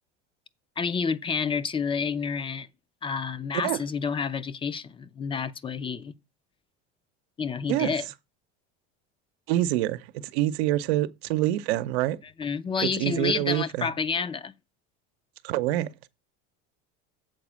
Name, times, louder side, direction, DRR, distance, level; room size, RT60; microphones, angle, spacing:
voice 1, 0.8-2.7 3.0-6.1 7.4-8.1 12.2-14.5, left 5 dB, 15° left, 0.4 m, -29 dB
voice 2, 9.5-12.2 13.0-13.9 15.4-15.9, right 14 dB, 90° right, 0.8 m, -26 dB
7.8 x 4.2 x 6.1 m
supercardioid pair, 125°, 31 cm